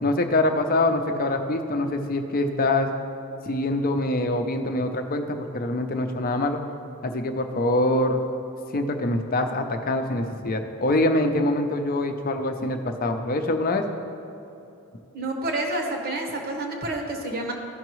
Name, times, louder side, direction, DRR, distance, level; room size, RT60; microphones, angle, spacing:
voice 1, 0.0-2.9 3.5-6.6 7.0-8.2 8.7-13.9, left 2 dB, 40° left, 5 dB, 0.6 m, -24 dB
voice 2, 15.1-17.5, right 2 dB, 45° right, 2 dB, 1.1 m, -29 dB
14.5 x 5.8 x 3.1 m, 2.9 s
head